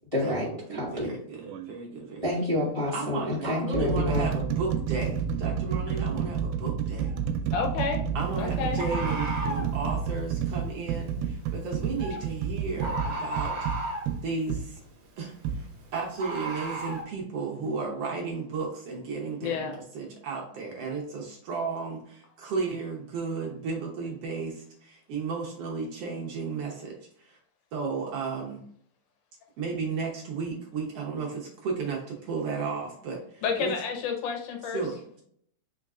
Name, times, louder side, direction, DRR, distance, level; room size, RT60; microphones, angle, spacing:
voice 1, 0.1-1.1 2.2-4.3, left 2 dB, 15° left, -8 dB, 1.0 m, -28 dB
voice 2, 0.7-2.2 2.9-7.1 8.1-13.7 14.2-14.8 15.2-15.7 15.9-27.4 27.7-28.6 29.6-33.7 34.7-35.2, right 4 dB, 70° right, -1 dB, 1.5 m, -34 dB
sound 1, 1.4-1.7 2.6-2.7 3.4-14.7 15.4-15.6, right 7 dB, 90° right, 2.1 m, -30 dB
Bird, 7.0-7.2 8.8-9.7 12.0-12.2 12.8-14.1 16.2-17.0, right 1 dB, 55° right, 1.6 m, -33 dB
voice 3, 7.5-8.0 8.4-8.8 19.4-19.8 33.4-34.8, left 6 dB, 80° left, 3 dB, 2.3 m, -30 dB
4.7 x 3.7 x 2.4 m, 0.65 s
omnidirectional pair, 3.7 m